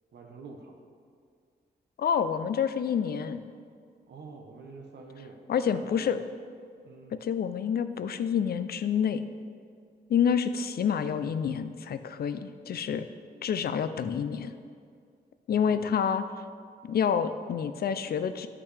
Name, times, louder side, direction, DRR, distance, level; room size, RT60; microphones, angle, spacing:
voice 1, 0.1-0.7 4.1-6.1 6.8-7.2 15.6-15.9, right 4 dB, 80° right, 2 dB, 1.0 m, -47 dB
voice 2, 2.0-3.4 5.5-6.2 7.2-9.2 10.1-13.1 13.4-14.5 15.5-16.2 16.8-18.5, left 7 dB, 65° left, 11 dB, 0.4 m, -28 dB
9.9 x 5.8 x 3.3 m, 2.1 s
wide cardioid pair, 105°, 17 cm